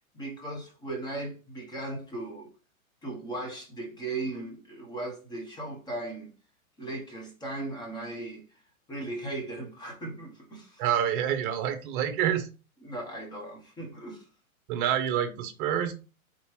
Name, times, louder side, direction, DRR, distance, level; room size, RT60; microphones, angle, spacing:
voice 1, 0.1-2.5 3.0-6.3 6.8-8.4 8.9-10.8 12.8-14.3, right 2 dB, 10° left, 0.9 m, -37 dB
voice 2, 10.8-12.5 14.7-15.9, right 10 dB, 40° right, 0.9 m, -27 dB
3.7 x 2.9 x 3.1 m
hypercardioid pair, 125°, 42 cm